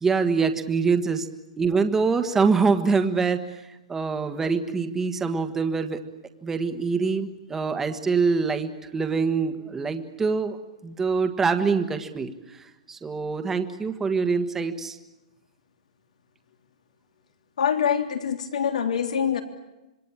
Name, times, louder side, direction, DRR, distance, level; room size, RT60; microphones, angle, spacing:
voice 1, 0.0-1.3 1.6-6.0 6.4-10.6 10.8-15.0, right 5 dB, 10° right, 8 dB, 1.5 m, -25 dB
voice 2, 17.6-19.4, left 8 dB, 85° left, 6 dB, 3.4 m, -24 dB
26.5 x 22.5 x 8.8 m, 0.98 s
hypercardioid pair, 155°, 4 cm